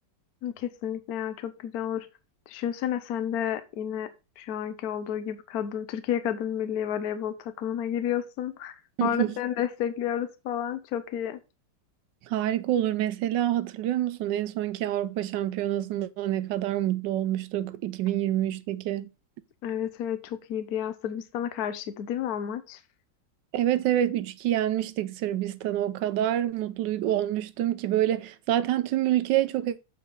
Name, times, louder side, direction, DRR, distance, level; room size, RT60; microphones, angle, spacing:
voice 1, 0.4-2.1 2.5-4.1 4.4-11.4 19.6-22.8, left 9 dB, 65° left, 1.0 m, -31 dB
voice 2, 9.0-9.4 12.3-19.1 23.5-29.8, right 12 dB, 75° right, 1.1 m, -27 dB
7.8 x 5.1 x 3.8 m
omnidirectional pair, 2.3 m